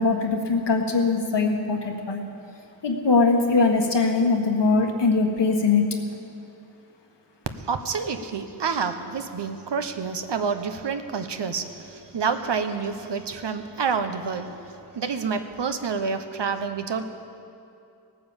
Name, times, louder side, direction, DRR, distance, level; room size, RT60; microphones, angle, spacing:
voice 1, 0.0-2.2 2.8-5.8, left 3 dB, 85° left, 2 dB, 1.6 m, -21 dB
voice 2, 7.6-17.0, right 5 dB, 85° right, 8 dB, 1.0 m, -28 dB
18.0 x 9.3 x 7.2 m, 2.6 s
wide cardioid pair, 80°, 41 cm